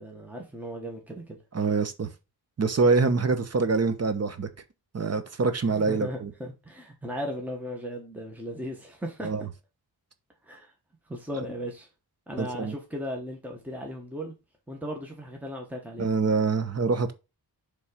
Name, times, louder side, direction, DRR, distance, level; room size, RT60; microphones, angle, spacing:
voice 1, 0.0-1.4 5.6-9.3 10.4-10.7 11.1-11.9 12.3-14.3 14.7-16.1, equal, 5° right, 1.2 m, -37 dB
voice 2, 1.5-2.1 2.6-4.5 4.9-6.3 9.2-9.5 12.4-12.7 16.0-17.1, right 4 dB, 40° right, 1.0 m, -25 dB
7.3 x 3.6 x 5.0 m
wide cardioid pair, 175°, 39 cm